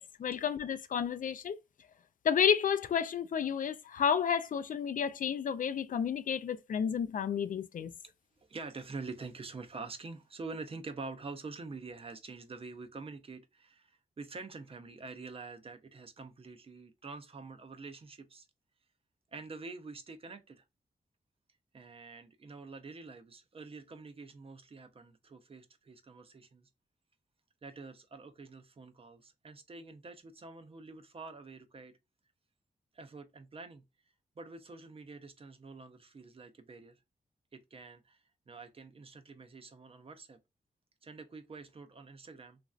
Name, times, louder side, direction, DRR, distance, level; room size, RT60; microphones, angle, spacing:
voice 1, 0.0-1.6 2.2-7.9, left 7 dB, 65° left, 0.4 m, -31 dB
voice 2, 8.4-18.5 19.3-20.6 21.7-26.7 27.6-31.9 32.9-33.8 34.4-37.0 37.5-40.4 41.0-42.6, right 3 dB, 40° right, 0.5 m, -46 dB
3.1 x 2.5 x 2.3 m
wide cardioid pair, 100°, 15 cm